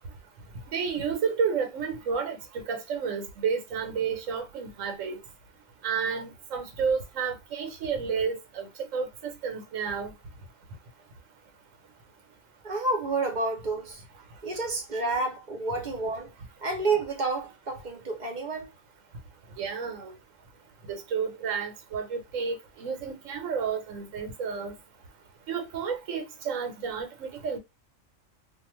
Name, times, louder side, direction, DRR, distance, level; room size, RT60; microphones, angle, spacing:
voice 1, 0.7-5.2 5.8-10.1 19.6-20.2 20.9-24.7 25.5-27.6, right 6 dB, 75° right, 1.1 m, -31 dB
voice 2, 12.6-14.0 14.4-16.3 16.6-18.7, right 3 dB, 40° right, 0.8 m, -29 dB
2.6 x 2.3 x 3.0 m
omnidirectional pair, 1.3 m